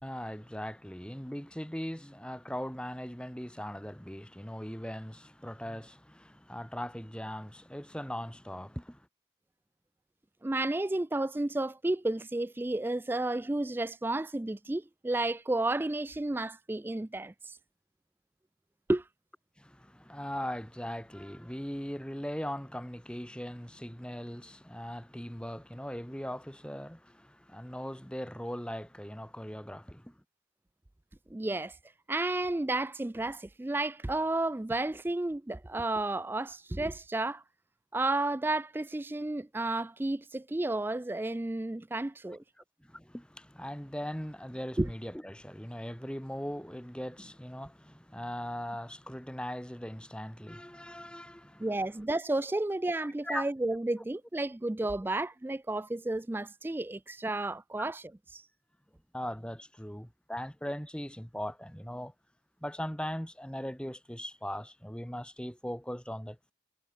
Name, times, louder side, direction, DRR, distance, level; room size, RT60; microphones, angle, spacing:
voice 1, 0.0-9.1 19.6-30.2 42.6-51.7 53.2-53.5 59.1-62.1 62.6-66.5, equal, 5° left, 2.5 m, -39 dB
voice 2, 10.4-17.6 18.9-19.0 31.3-31.8 32.1-37.4 37.9-42.4 44.8-44.9 51.6-58.0 58.3-58.4, right 2 dB, 10° right, 0.3 m, -32 dB
head